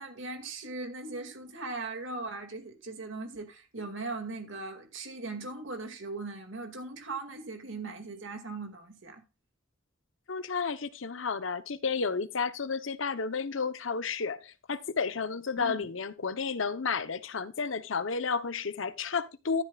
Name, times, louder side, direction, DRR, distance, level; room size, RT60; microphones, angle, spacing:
voice 1, 0.0-9.2 15.6-15.9, right 3 dB, 80° right, 2.2 m, -39 dB
voice 2, 10.3-19.6, left 5 dB, 85° left, 0.9 m, -32 dB
12.5 x 11.0 x 2.4 m
head